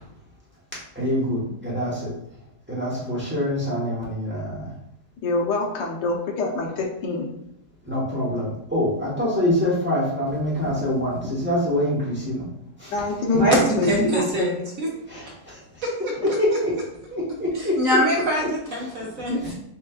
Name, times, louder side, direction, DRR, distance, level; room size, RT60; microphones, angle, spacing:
voice 1, 0.9-2.1 2.7-4.7 7.8-12.5 12.8-12.9 15.1-15.6 16.4-16.7 17.1-17.8 18.4-18.5 18.8-18.9 19.3-19.5, left 1 dB, 10° right, -6 dB, 0.9 m, -25 dB
voice 2, 5.2-7.3 12.9-14.5, left 2 dB, 80° left, -1 dB, 1.4 m, -25 dB
voice 3, 13.3-14.9 15.8-16.1 17.8-19.4, equal, 60° right, -2 dB, 1.0 m, -23 dB
6.2 x 2.3 x 2.4 m, 0.79 s
omnidirectional pair, 1.8 m